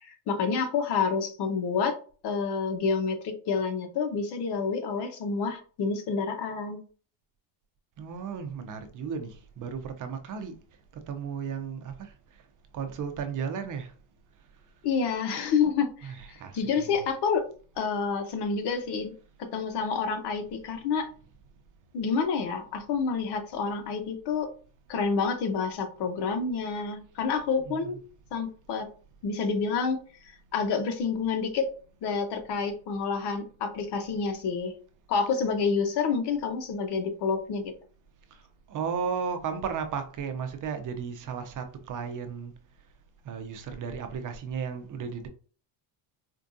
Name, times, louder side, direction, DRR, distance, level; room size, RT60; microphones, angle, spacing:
voice 1, 0.0-2.0 2.2-6.8 14.8-17.4 17.8-19.1 19.4-21.1 21.9-24.5 24.9-28.0 28.3-28.9 29.2-31.7 32.0-34.7 35.1-37.7, left 5 dB, 60° left, 0.9 m, -28 dB
voice 2, 8.0-10.6 11.1-12.1 12.7-13.9 16.0-17.1 27.6-28.0 38.7-42.5 43.3-45.3, right 6 dB, 45° right, 0.7 m, -34 dB
4.5 x 2.3 x 2.6 m
cardioid pair, 115°, 45 cm